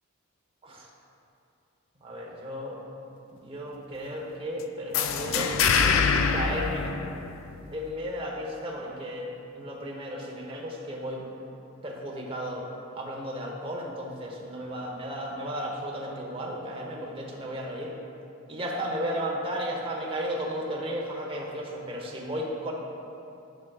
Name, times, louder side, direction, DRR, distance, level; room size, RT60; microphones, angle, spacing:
voice 1, 2.0-2.8 3.3-5.5 6.3-6.9 7.7-11.3 11.8-12.7 12.9-17.9 18.5-22.7, equal, 25° right, -1 dB, 0.9 m, -34 dB
sound 1, 4.9-7.7, left 6 dB, 80° left, 0.4 m, -25 dB
9.9 x 7.1 x 2.4 m, 2.7 s
head